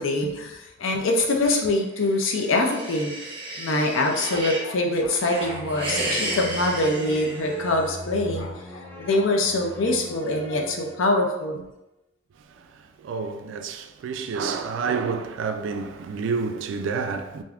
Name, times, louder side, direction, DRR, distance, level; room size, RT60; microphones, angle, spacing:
voice 1, 0.0-3.2 3.6-11.6, left 2 dB, 80° left, 0.5 m, -24 dB
sound 1, 2.0-4.7 5.1-8.0, right 1 dB, 25° right, 0.7 m, -33 dB
sound 2, 5.4-11.5, left 1 dB, 10° left, 0.3 m, -39 dB
voice 2, 13.0-17.4, right 5 dB, 75° right, 0.3 m, -29 dB
3.4 x 2.6 x 2.3 m
head